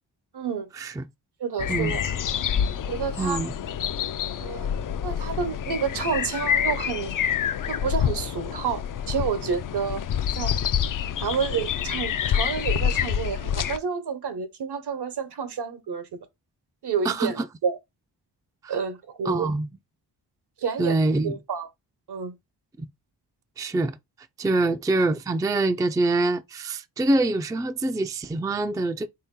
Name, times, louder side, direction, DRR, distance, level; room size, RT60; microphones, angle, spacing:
voice 1, 0.3-0.7 1.4-2.0 2.9-3.4 4.4-4.7 5.0-7.2 7.7-10.0 10.3-10.5 11.2-16.1 16.8-17.8 18.7-19.5 20.6-21.0 21.2-21.7 22.1-22.4 24.6-24.7, right 6 dB, 65° right, 1.0 m, -29 dB
sound 1, 1.6-13.8, left 9 dB, 50° left, 0.5 m, -27 dB
voice 2, 3.2-3.5 17.0-17.4 18.6-18.8 19.3-19.7 20.8-21.4 23.6-24.0 24.4-29.1, right 2 dB, 10° right, 0.4 m, -25 dB
3.6 x 2.8 x 3.6 m
cardioid pair, 60°, 43 cm